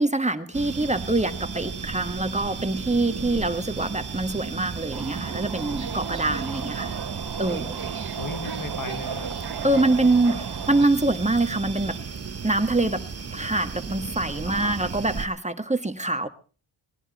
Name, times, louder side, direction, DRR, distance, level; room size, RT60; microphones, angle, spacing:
voice 1, 0.0-6.9 7.4-7.8 9.6-12.0 12.4-16.3, right 2 dB, 15° right, 8 dB, 1.4 m, -25 dB
sound 1, 0.5-15.3, right 5 dB, 30° right, 1.1 m, -35 dB
sound 2, 0.5-12.0, right 10 dB, 80° right, 1.9 m, -43 dB
Subway metro underground, 4.9-10.9, right 7 dB, 45° right, 1.5 m, -35 dB
voice 2, 8.2-9.4 14.5-14.8, left 4 dB, 40° left, 11 dB, 1.3 m, -37 dB
20.0 x 15.5 x 4.1 m, 0.38 s
cardioid pair, 85°, 50 cm